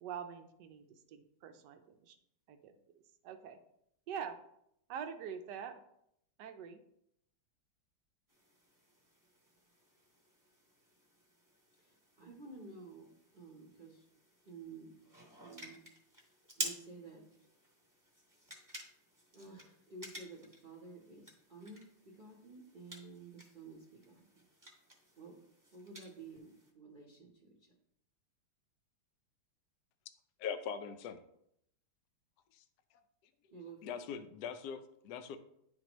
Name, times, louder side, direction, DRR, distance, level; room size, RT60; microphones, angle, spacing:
voice 1, 0.0-2.2 2.5-2.8 3.2-3.6 4.1-4.4 4.9-5.8 6.4-6.8, right 7 dB, 75° right, 8 dB, 1.0 m, -45 dB
sound 1, 8.3-26.7, right 1 dB, 10° right, 0.9 m, -51 dB
voice 2, 11.8-14.1 14.4-15.0 15.4-15.9 16.6-17.5 18.5-18.6 19.3-24.5 25.2-25.4 25.7-27.8 33.5-33.9, right 3 dB, 45° right, -2 dB, 0.6 m, -52 dB
voice 3, 30.4-31.2 32.5-32.6 33.8-35.4, left 7 dB, 80° left, 8 dB, 0.8 m, -41 dB
10.5 x 4.3 x 3.0 m, 0.75 s
omnidirectional pair, 2.4 m